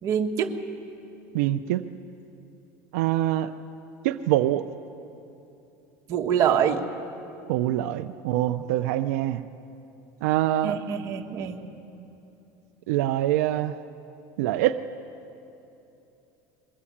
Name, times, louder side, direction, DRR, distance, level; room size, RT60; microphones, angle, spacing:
voice 1, 0.0-0.5 6.1-6.8 10.6-11.6, right 8 dB, 40° right, 3 dB, 1.4 m, -25 dB
voice 2, 1.3-1.8 2.9-3.5 4.0-4.6 7.5-9.4 10.2-10.8 12.9-13.7 14.4-14.8, right 13 dB, 85° right, 8 dB, 0.6 m, -24 dB
22.0 x 15.0 x 8.6 m, 2.9 s
cardioid pair, 155°, 8 cm